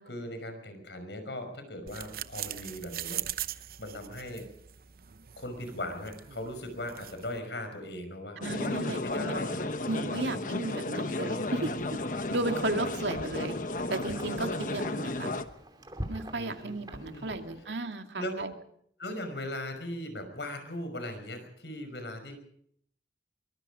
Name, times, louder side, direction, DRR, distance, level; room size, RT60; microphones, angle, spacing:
voice 1, 0.0-4.5 5.4-9.5 10.1-10.4 16.3-17.4 18.2-18.5 19.0-22.4, left 1 dB, 75° left, 7 dB, 5.5 m, -39 dB
sound 1, 1.9-7.4, right 12 dB, 55° right, 0.8 m, -41 dB
sound 2, 8.4-15.4, left 2 dB, 45° left, 1.1 m, -33 dB
voice 2, 8.4-9.4 9.9-11.8 12.3-13.6 13.9-15.3 16.1-18.5, right 2 dB, 80° right, 5 dB, 2.3 m, -34 dB
Wind, 11.4-17.9, right 1 dB, 25° right, 2.7 m, -46 dB
23.5 x 22.5 x 5.1 m, 0.69 s
head